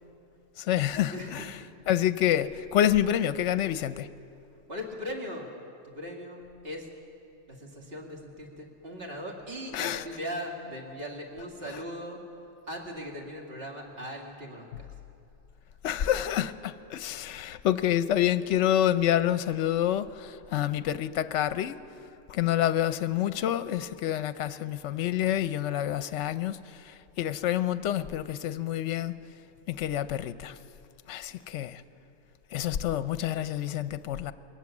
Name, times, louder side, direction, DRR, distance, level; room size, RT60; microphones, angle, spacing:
voice 1, 0.6-1.6 1.9-4.1 9.7-10.1 11.7-11.8 15.8-21.8 22.3-29.2 29.7-30.6 31.1-31.8 32.5-34.3, left 11 dB, 70° left, 0.9 m, -28 dB
voice 2, 1.1-1.7 4.7-5.5 5.8-6.8 7.5-12.2 12.7-14.9, equal, 45° right, 2.5 m, -39 dB
22.5 x 18.5 x 7.2 m
omnidirectional pair, 1.4 m